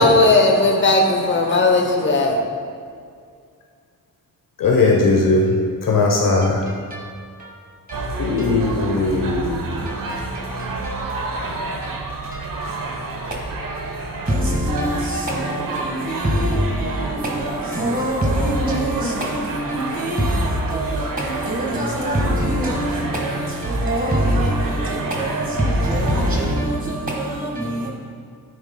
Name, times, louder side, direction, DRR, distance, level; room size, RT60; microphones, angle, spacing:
voice 1, 0.0-2.4, left 2 dB, 30° left, 0.9 m, -16 dB
voice 2, 4.6-5.6 5.8-6.6 8.2-9.8, left 3 dB, 65° left, 0.9 m, -18 dB
voice 3, 6.4-8.7 9.9-12.6 13.3-13.4 14.3-27.9, right 1 dB, 25° right, 1.6 m, -24 dB
sound 1, 7.9-26.5, right 2 dB, 65° right, 1.1 m, -29 dB
9.4 x 9.2 x 2.2 m
wide cardioid pair, 140°, 36 cm